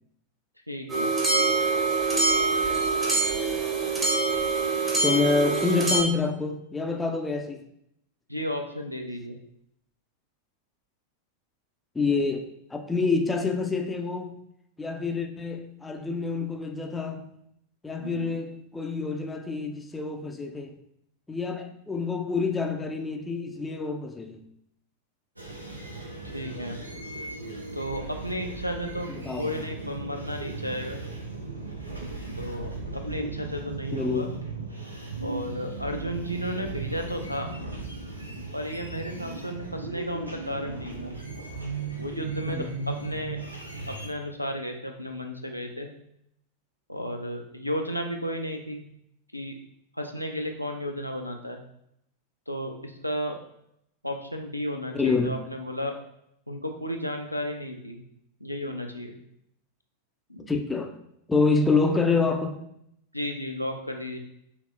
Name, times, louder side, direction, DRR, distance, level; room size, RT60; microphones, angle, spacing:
voice 1, 0.7-1.1 8.3-9.4 18.0-18.3 26.3-26.8 27.7-29.1 29.3-31.0 32.4-34.3 35.2-37.5 38.5-41.1 42.0-43.4 43.9-45.9 46.9-48.8 49.3-49.6 49.9-51.6 52.5-53.3 54.0-55.9 56.5-58.0 58.4-59.1 60.3-60.5 63.1-64.2, equal, 90° left, 3 dB, 0.4 m, -33 dB
sound 1, 0.9-6.0, right 3 dB, 15° right, 0.9 m, -24 dB
voice 2, 5.0-7.6 11.9-14.4 14.8-17.2 17.8-20.7 21.3-24.4 29.2-29.6 33.9-34.3 42.5-42.7 54.9-55.3 60.5-60.9 61.3-62.6, left 4 dB, 10° left, 3 dB, 0.4 m, -27 dB
sound 2, 25.4-44.1, right 3 dB, 85° right, 0.6 m, -37 dB
5.7 x 2.0 x 2.5 m, 0.75 s
figure-of-eight pair, 90°, 0 cm